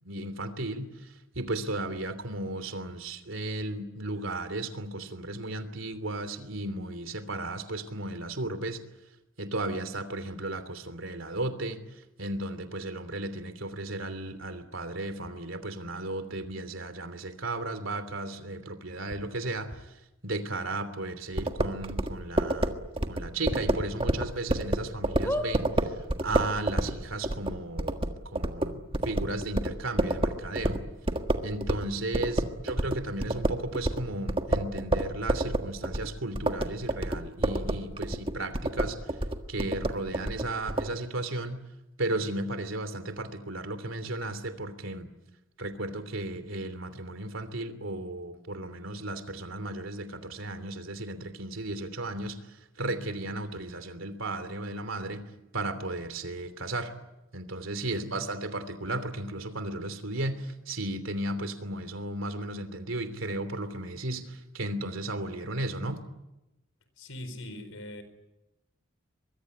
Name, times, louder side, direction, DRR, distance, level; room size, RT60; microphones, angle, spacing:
voice 1, 0.0-8.8 9.4-19.9 20.2-30.8 31.4-39.2 39.5-41.6 42.0-45.1 45.6-55.2 55.5-56.9 57.3-66.0, right 2 dB, 75° right, 10 dB, 3.0 m, -35 dB
sound 1, 19.1-19.2 19.7-19.8 20.8-20.9 21.2-21.3 21.7-21.8 23.5-24.2 24.7-24.8 25.2-25.5 26.3-26.4 26.6-26.7, left 1 dB, 10° left, 2.9 m, -33 dB
sound 2, 21.4-31.9 32.1-40.9, right 1 dB, 25° right, 1.6 m, -29 dB
voice 2, 32.2-32.6 57.8-58.2 67.0-68.0, left 1 dB, 85° left, 11 dB, 4.5 m, -42 dB
24.0 x 22.5 x 9.8 m, 0.95 s
head